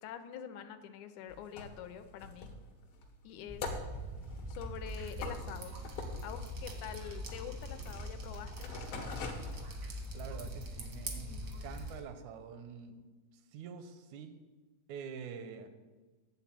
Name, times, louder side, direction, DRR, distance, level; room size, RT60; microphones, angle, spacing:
voice 1, 0.0-2.5 3.2-3.7 4.5-5.7 6.2-8.8, left 9 dB, 85° left, 9 dB, 2.1 m, -45 dB
sound 1, 1.3-10.3 10.7-10.8, left 3 dB, 65° left, 1.8 m, -45 dB
sound 2, 3.5-11.9, equal, 20° left, 0.5 m, -43 dB
Drip, 4.8-12.0, right 2 dB, 65° right, 0.8 m, -49 dB
voice 2, 10.1-13.0 13.5-14.3 14.9-15.7, right 6 dB, 90° right, 8 dB, 2.1 m, -46 dB
10.0 x 4.0 x 7.5 m, 1.3 s
omnidirectional pair, 3.3 m